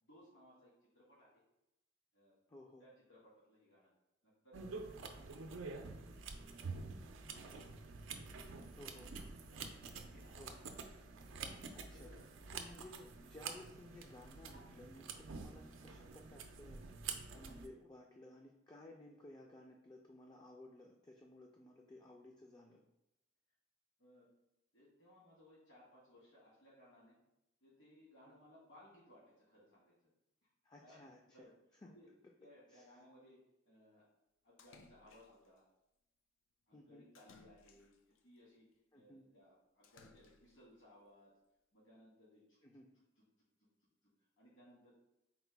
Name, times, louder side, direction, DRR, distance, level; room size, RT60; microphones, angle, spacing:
voice 1, 0.0-1.4 2.1-2.4 2.8-3.9 4.2-6.6 7.2-7.6 8.3-8.9 9.5-10.5 11.5-12.5 24.0-24.3 24.7-27.2 27.6-30.1 30.4-30.5 30.8-31.5 31.8-32.1 32.4-34.1 34.4-35.6 36.7-38.7 38.9-41.3 41.7-42.6 43.2-43.3 43.6-43.7 44.0-44.9, left 1 dB, 70° left, -7 dB, 1.3 m, -64 dB
voice 2, 2.5-2.9 8.7-9.1 10.4-10.6 11.7-12.1 12.5-16.8 17.3-22.8 30.6-31.2 31.8-31.9 32.7-32.8 36.7-37.0 38.9-39.2 42.6-42.8, left 1 dB, 20° left, 0 dB, 0.3 m, -57 dB
sound 1, 4.5-17.7, right 4 dB, 90° right, 0.4 m, -48 dB
Splash splatter, 34.6-35.6 37.1-38.2 39.8-40.7, left 4 dB, 90° left, 0.4 m, -64 dB
4.1 x 2.2 x 4.5 m, 0.89 s
head